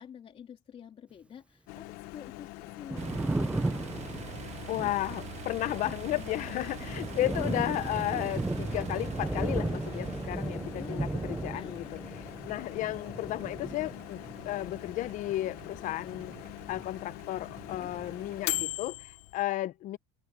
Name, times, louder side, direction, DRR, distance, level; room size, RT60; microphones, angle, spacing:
voice 1, 0.0-3.9 6.1-6.9 7.1-7.6 10.7-11.1 11.5-11.9, left 8 dB, 40° left, 3.2 m, -49 dB
Microwave oven, 1.7-19.4, left 19 dB, 90° left, 0.8 m, -42 dB
Thunder, 2.7-17.1 17.4-18.6, right 2 dB, 10° right, 0.5 m, -36 dB
sound 1, 3.0-18.7, right 12 dB, 45° right, 1.1 m, -47 dB
voice 2, 4.7-11.8 12.4-14.2 14.5-16.3 16.7-20.0, left 15 dB, 55° left, 0.8 m, -33 dB
cardioid pair, 135°, 15 cm